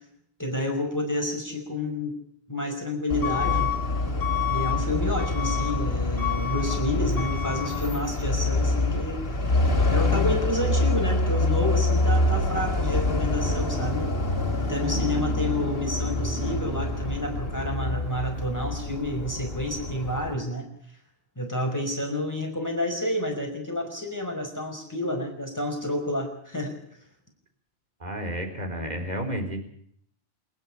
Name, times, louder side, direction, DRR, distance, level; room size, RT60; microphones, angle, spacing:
voice 1, 0.4-2.1 2.5-3.7 4.5-9.2 9.9-14.1 14.6-20.6 21.4-26.7, left 1 dB, 15° left, 2 dB, 5.3 m, -29 dB
Truck / Alarm, 3.1-20.3, left 2 dB, 65° left, 2.6 m, -26 dB
voice 2, 28.0-29.6, equal, 40° right, 5 dB, 4.2 m, -31 dB
28.0 x 10.5 x 10.0 m, 0.64 s
omnidirectional pair, 1.1 m